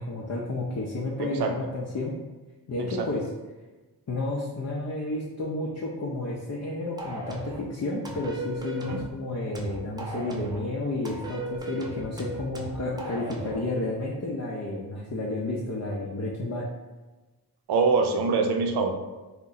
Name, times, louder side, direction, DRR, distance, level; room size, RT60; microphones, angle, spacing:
voice 1, 0.0-2.2 2.7-3.2 4.1-16.7, left 2 dB, 40° left, -4 dB, 0.6 m, -31 dB
voice 2, 2.8-3.1 8.9-9.0 17.7-18.9, right 4 dB, 80° right, 4 dB, 0.5 m, -24 dB
sound 1, 7.0-7.6 8.0-9.1 9.5-10.6 11.0-13.6, right 1 dB, 10° right, 0.5 m, -37 dB
2.6 x 2.1 x 3.8 m, 1.2 s
cardioid pair, 55°, 40 cm